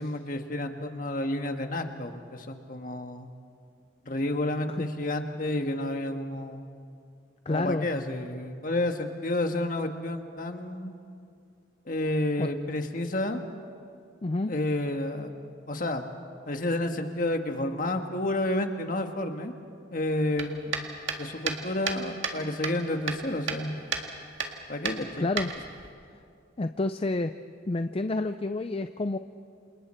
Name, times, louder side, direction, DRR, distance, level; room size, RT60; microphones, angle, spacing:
voice 1, 0.0-3.3 4.0-6.7 7.5-10.9 11.9-13.4 14.5-15.3 15.7-16.0 16.5-19.5 19.9-20.8 21.2-23.8 24.7-25.3, left 1 dB, 45° left, 5 dB, 1.5 m, -30 dB
voice 2, 7.5-7.9 12.4-12.5 14.2-14.5 25.2-25.5 26.6-27.3 27.7-29.2, left 2 dB, 30° left, 9 dB, 0.4 m, -29 dB
sound 1, 20.4-22.4 22.6-23.6 23.9-24.1 24.4-24.5 24.9-25.9, right 5 dB, 80° right, 1.9 m, -32 dB
28.5 x 28.0 x 4.4 m, 2.3 s
head